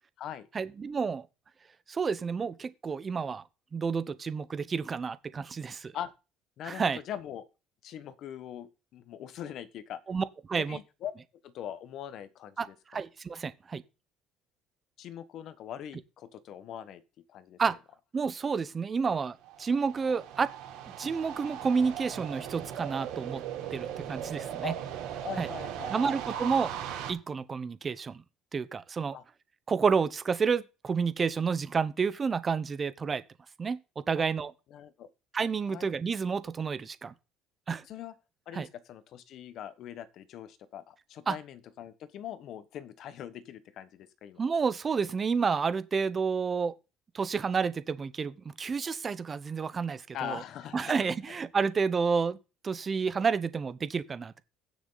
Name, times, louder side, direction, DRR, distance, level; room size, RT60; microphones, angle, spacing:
voice 1, 0.5-1.2 1.9-3.4 3.7-5.9 6.7-7.0 10.1-10.8 12.6-12.7 12.9-13.8 17.6-17.8 18.1-20.5 21.0-23.4 23.7-24.7 25.4-25.5 25.9-26.7 27.1-28.2 28.5-29.2 29.7-33.2 33.6-33.8 34.1-34.5 35.3-37.1 37.7-37.8 38.5-38.7 41.3-41.4 44.4-46.7 47.1-50.4 50.7-52.4 52.6-54.4, right 5 dB, 25° right, 0.8 m, -30 dB
voice 2, 6.6-7.5 7.8-10.0 10.6-11.1 11.4-13.0 15.0-17.0 17.3-17.6 24.6-24.7 25.2-26.2 29.1-29.2 34.7-35.1 35.7-35.9 37.9-38.1 38.5-44.4 50.1-51.1, left 10 dB, 50° left, 1.3 m, -42 dB
sound 1, 19.4-27.1, right 9 dB, 85° right, 3.6 m, -38 dB
16.0 x 6.7 x 4.0 m
cardioid pair, 150°, 0 cm